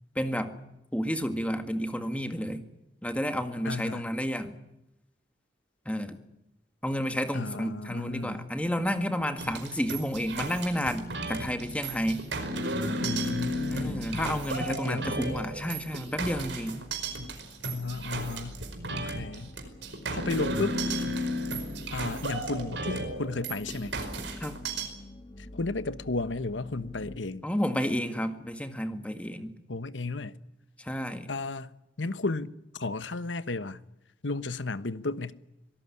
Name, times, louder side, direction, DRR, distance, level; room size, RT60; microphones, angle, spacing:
voice 1, 0.2-0.6 0.9-2.6 3.0-4.6 5.9-6.2 6.8-12.2 13.7-16.8 24.4-24.6 27.4-29.5 30.8-31.3, equal, 5° left, 1.8 m, -31 dB
voice 2, 3.6-4.1 7.3-8.5 13.0-14.4 14.7-15.2 17.6-19.6 20.1-20.8 21.9-24.0 25.4-27.5 29.7-30.3 31.3-31.7 32.0-33.8 34.2-35.4, left 3 dB, 85° left, 1.2 m, -34 dB
sound 1, 8.0-27.2, left 1 dB, 25° left, 2.0 m, -46 dB
sound 2, 9.4-24.9, right 1 dB, 75° right, 5.0 m, -34 dB
25.5 x 18.5 x 9.9 m
head